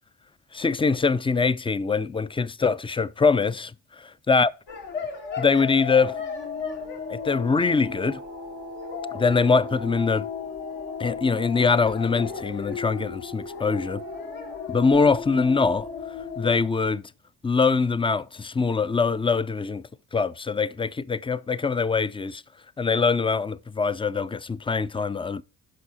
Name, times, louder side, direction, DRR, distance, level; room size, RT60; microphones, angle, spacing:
voice 1, 0.5-3.7 4.3-4.5 5.4-6.2 7.1-8.2 9.1-10.3 11.0-14.0 14.7-15.9 16.4-17.0 17.4-22.4 22.8-25.4, left 4 dB, 15° left, 0.4 m, -23 dB
sound 1, 4.7-16.6, left 5 dB, 80° left, 2.9 m, -34 dB
11.5 x 5.5 x 4.2 m
supercardioid pair, 70°, 43 cm